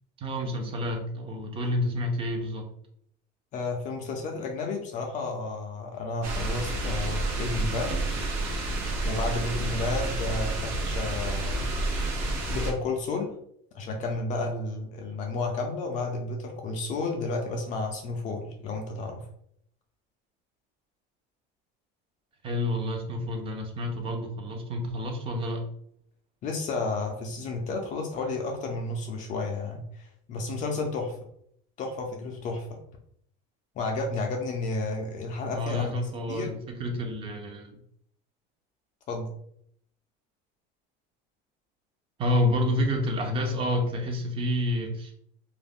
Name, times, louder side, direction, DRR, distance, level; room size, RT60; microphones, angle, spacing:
voice 1, 0.2-2.6 22.4-25.6 35.5-37.8 42.2-45.3, left 1 dB, 25° right, 3 dB, 0.5 m, -29 dB
voice 2, 3.5-8.1 9.0-11.7 12.5-13.3 13.7-19.3 26.4-31.2 31.8-32.8 33.8-35.9 36.3-36.5 39.1-39.3, left 3 dB, 35° left, 2 dB, 0.4 m, -32 dB
sound 1, 6.2-12.7, right 2 dB, 70° right, 0.7 m, -29 dB
2.4 x 2.0 x 3.4 m, 0.69 s
cardioid pair, 165°, 21 cm